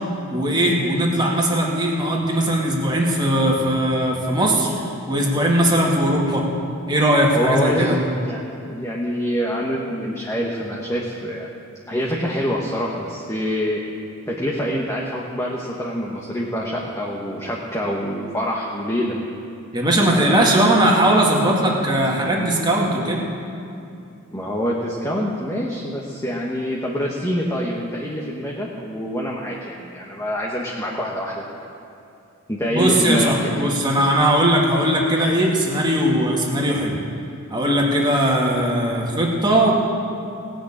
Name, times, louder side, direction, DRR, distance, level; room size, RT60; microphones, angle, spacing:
voice 1, 0.3-6.4 6.9-8.0 19.7-23.2 32.7-37.0 37.5-39.7, right 1 dB, 20° right, -2 dB, 2.0 m, -19 dB
voice 2, 7.3-7.9 8.2-8.4 8.6-11.5 11.9-13.8 14.3-19.2 20.1-20.4 24.3-31.4 32.5-33.3, equal, 15° left, -3 dB, 1.1 m, -25 dB
18.0 x 6.4 x 8.7 m, 2.6 s
head